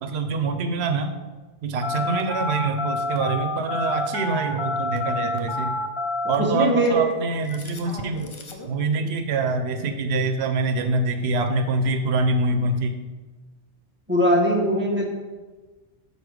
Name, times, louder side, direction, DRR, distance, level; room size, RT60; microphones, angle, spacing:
voice 1, 0.0-1.2 1.6-5.8 6.3-8.3 8.7-13.0, right 3 dB, 85° right, 6 dB, 0.9 m, -25 dB
Telephone, 1.8-8.7, left 2 dB, 35° left, 0.6 m, -29 dB
voice 2, 6.5-6.9 14.1-15.1, equal, 10° right, -3 dB, 1.2 m, -20 dB
6.5 x 4.2 x 5.0 m, 1.3 s
omnidirectional pair, 1.1 m